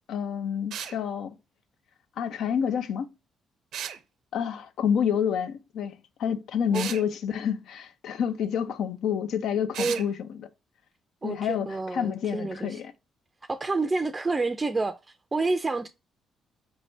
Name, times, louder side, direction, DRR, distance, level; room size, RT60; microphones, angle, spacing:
voice 1, 0.1-1.3 2.2-3.1 4.3-10.5 11.2-12.9, left 8 dB, 75° left, 0.6 m, -28 dB
sound 1, 0.7-1.0 3.7-4.0 6.7-7.0 9.7-10.1, right 9 dB, 80° right, 0.5 m, -34 dB
voice 2, 11.2-12.8 13.5-15.0 15.3-15.9, right 3 dB, 25° right, 0.4 m, -28 dB
4.4 x 3.2 x 2.6 m
cardioid pair, 90°, 0 cm